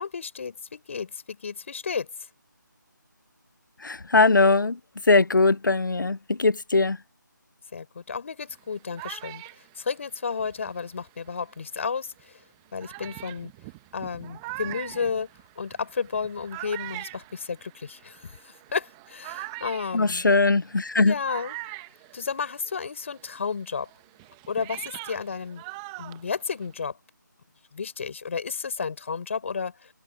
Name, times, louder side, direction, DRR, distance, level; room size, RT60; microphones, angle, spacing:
voice 1, 0.0-2.1 7.7-9.4 9.8-12.3 12.7-13.5 13.9-15.3 15.6-20.2 21.0-21.6 22.1-23.9 24.5-25.6 26.0-27.0 27.7-29.9, left 5 dB, 40° left, 5.0 m, -32 dB
voice 2, 3.8-4.8 5.1-7.0 19.9-21.1, left 3 dB, 75° left, 0.8 m, -20 dB
sound 1, 8.5-11.5 12.2-12.3 12.8-22.8 23.1-26.9, right 25 dB, 10° right, 1.0 m, -42 dB
figure-of-eight pair, 160°, 11 cm